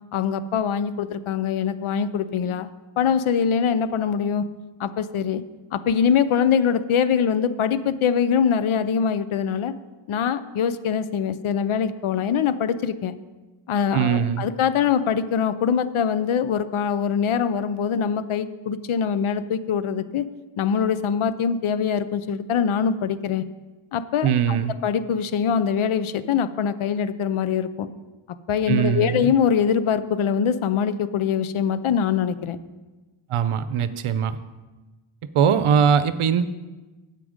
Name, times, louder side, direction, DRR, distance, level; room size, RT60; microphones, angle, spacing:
voice 1, 0.1-2.7 3.0-4.4 4.8-5.4 5.7-9.7 10.1-13.2 13.7-20.3 20.6-23.4 23.9-24.6 24.8-27.9 28.5-32.6, left 7 dB, 75° left, 14 dB, 0.7 m, -23 dB
voice 2, 13.9-14.5 24.2-24.8 28.7-29.3 33.3-34.4 35.3-36.4, right 8 dB, 75° right, 13 dB, 0.7 m, -21 dB
9.9 x 8.5 x 5.1 m, 1.2 s
wide cardioid pair, 140°, 50 cm